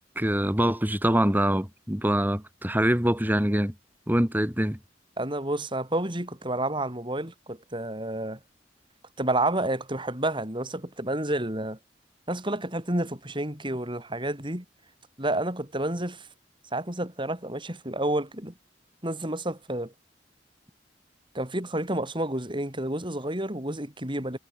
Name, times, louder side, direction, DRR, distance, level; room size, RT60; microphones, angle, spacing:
voice 1, 0.2-3.7 4.1-4.8, equal, 10° right, 3.6 m, -24 dB
voice 2, 5.2-8.4 9.2-11.8 12.3-14.6 15.2-16.3 16.7-18.5 19.0-19.9 21.3-24.4, right 1 dB, 25° right, 7.6 m, -30 dB
head